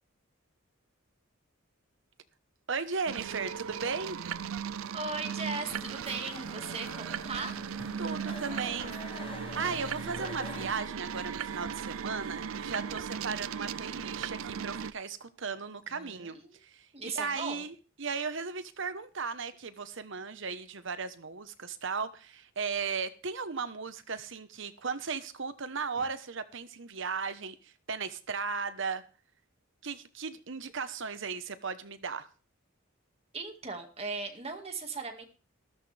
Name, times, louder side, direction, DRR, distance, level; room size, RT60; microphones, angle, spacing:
voice 1, 2.7-4.2 8.0-29.0 29.8-32.3, right 5 dB, 60° right, 1.1 m, -36 dB
sound 1, 3.1-14.9, right 7 dB, 80° right, 0.5 m, -37 dB
voice 2, 4.9-7.5 15.9-16.6 16.9-17.6 33.3-35.2, right 4 dB, 30° right, 2.0 m, -38 dB
sound 2, 5.7-10.7, left 3 dB, 25° left, 0.9 m, -45 dB
14.0 x 13.5 x 3.4 m
head